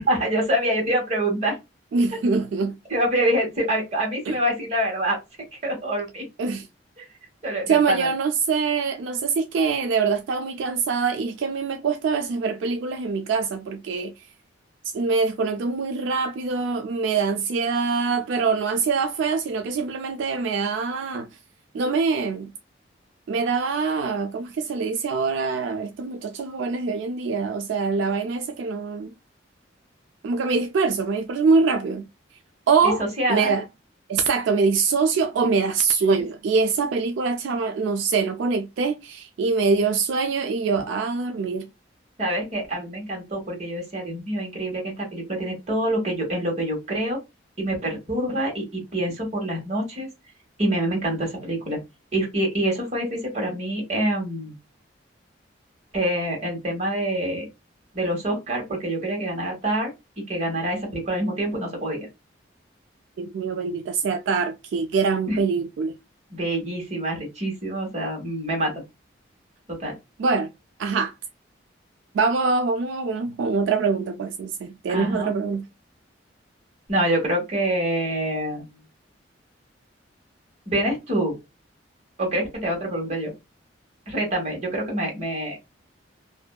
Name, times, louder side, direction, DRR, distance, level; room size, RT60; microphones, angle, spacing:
voice 1, 0.0-1.6 2.9-5.2 5.6-6.3 7.0-7.1 7.4-8.1 33.0-33.5 42.2-47.2 47.6-50.1 50.6-51.8 52.1-54.5 55.9-57.5 57.9-62.1 65.3-65.4 66.3-68.7 69.7-69.9 74.9-75.3 76.9-78.6 80.7-81.3 82.2-83.3 84.1-85.6, right 1 dB, 35° right, 1.2 m, -26 dB
voice 2, 1.9-2.8 4.3-4.4 6.4-6.7 7.7-14.3 14.9-21.3 21.7-22.5 23.3-29.1 30.2-32.0 32.7-33.0 33.3-33.6 34.1-41.7 63.2-66.0 70.2-70.5 70.8-71.1 72.1-75.7, right 4 dB, 75° right, 0.3 m, -24 dB
2.6 x 2.2 x 2.2 m
head